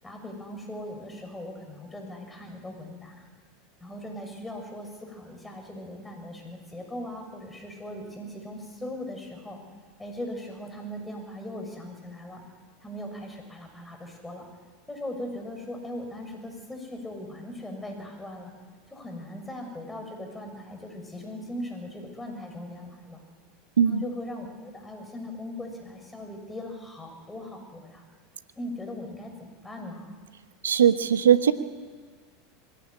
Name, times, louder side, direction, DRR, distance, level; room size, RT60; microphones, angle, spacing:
voice 1, 0.0-3.3 3.8-9.6 10.0-12.4 12.8-14.5 14.9-18.5 18.9-23.2 23.9-28.0 28.6-30.2, left 1 dB, 10° left, 3 dB, 6.9 m, -39 dB
voice 2, 30.6-31.5, right 9 dB, 85° right, 11 dB, 1.2 m, -19 dB
22.0 x 17.0 x 10.0 m, 1.5 s
hypercardioid pair, 90°, 0 cm